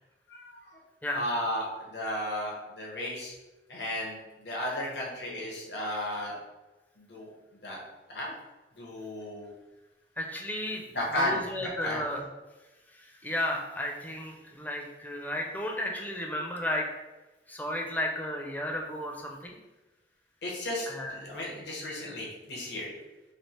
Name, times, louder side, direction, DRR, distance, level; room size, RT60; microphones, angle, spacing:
voice 1, 0.3-0.8 1.1-3.3 3.7-6.4 7.0-7.3 7.6-7.8 8.1-8.3 8.8-9.5 10.9-11.4 11.8-12.0 20.4-22.9, left 1 dB, 75° left, -3 dB, 1.0 m, -34 dB
voice 2, 10.2-10.9 11.2-12.2 12.9-16.9 17.5-19.6 20.9-21.1, left 1 dB, 10° left, 0 dB, 0.5 m, -33 dB
3.3 x 2.8 x 4.3 m, 1.1 s
head